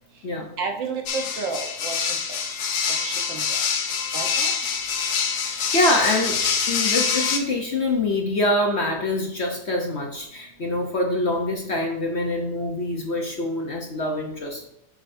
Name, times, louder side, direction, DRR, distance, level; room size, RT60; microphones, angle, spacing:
voice 1, 0.6-2.4 3.0-3.6 4.1-4.5, right 4 dB, 90° right, 3 dB, 1.8 m, -31 dB
sound 1, 1.1-7.4, left 6 dB, 85° left, 1.6 m, -25 dB
voice 2, 5.4-14.7, left 1 dB, 50° left, 1 dB, 0.9 m, -25 dB
8.8 x 6.2 x 2.7 m, 0.75 s
omnidirectional pair, 2.0 m